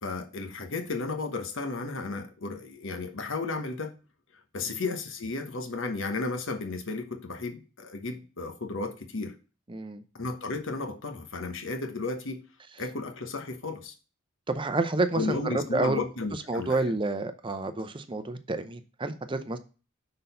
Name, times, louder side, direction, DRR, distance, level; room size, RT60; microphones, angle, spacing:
voice 1, 0.0-3.9 4.5-9.3 10.1-12.4 12.8-13.9 15.1-16.9, left 3 dB, 60° left, 6 dB, 1.1 m, -33 dB
voice 2, 9.7-10.0 14.5-16.0 16.5-19.6, right 2 dB, 25° right, 9 dB, 0.6 m, -29 dB
6.1 x 4.0 x 5.4 m, 0.34 s
head